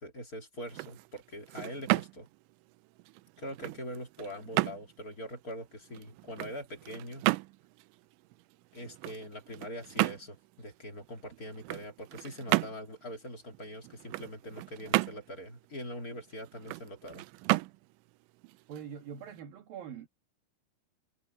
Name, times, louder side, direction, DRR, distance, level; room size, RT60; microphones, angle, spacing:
voice 1, 0.0-2.3 3.4-7.2 8.7-17.3, equal, 25° left, 2.5 m, -43 dB
sound 1, 0.6-19.4, right 21 dB, 90° right, 3.0 m, -35 dB
voice 2, 18.7-20.1, right 8 dB, 60° right, 3.2 m, -43 dB
omnidirectional pair, 5.3 m